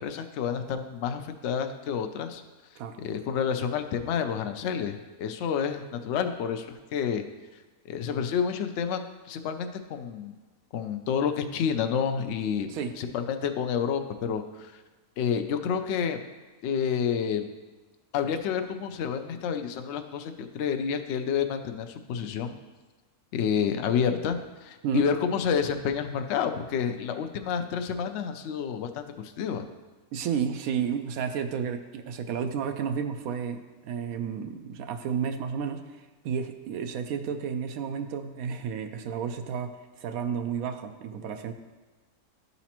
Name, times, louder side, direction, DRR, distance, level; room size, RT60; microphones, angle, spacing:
voice 1, 0.0-2.4 3.0-7.2 7.9-10.3 10.7-12.7 13.0-14.8 15.2-16.2 16.6-17.5 18.1-22.6 23.3-29.6, left 7 dB, 65° left, 7 dB, 0.7 m, -29 dB
voice 2, 30.1-35.9 36.2-41.5, right 7 dB, 75° right, 7 dB, 1.0 m, -32 dB
12.0 x 4.1 x 2.9 m, 1.2 s
omnidirectional pair, 1.5 m